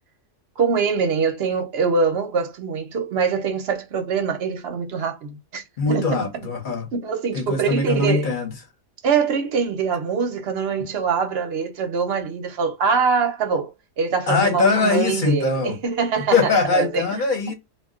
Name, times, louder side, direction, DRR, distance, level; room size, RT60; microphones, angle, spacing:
voice 1, 0.6-6.3 6.9-8.3 9.0-13.7 14.0-16.4 16.7-17.0, right 5 dB, 60° right, 0.7 m, -23 dB
voice 2, 5.8-6.9 7.3-8.5 14.3-15.7 16.3-17.5, left 4 dB, 40° left, 0.8 m, -21 dB
2.3 x 2.2 x 3.6 m
omnidirectional pair, 1.5 m